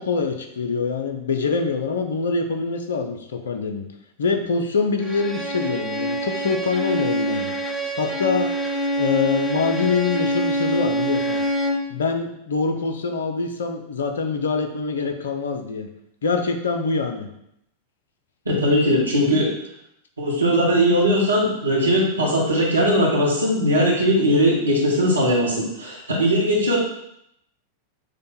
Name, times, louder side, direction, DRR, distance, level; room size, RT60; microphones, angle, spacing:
voice 1, 0.0-3.9 4.2-7.5 8.0-8.5 8.9-11.4 11.9-15.9 16.2-17.3, left 4 dB, 65° left, 5 dB, 0.6 m, -24 dB
Bowed string instrument, 5.0-11.9, right 1 dB, 5° left, 0.6 m, -25 dB
voice 2, 18.4-19.5 20.2-26.8, equal, 80° right, -4 dB, 1.2 m, -19 dB
6.5 x 2.3 x 3.6 m, 0.76 s
figure-of-eight pair, 90°, 0 cm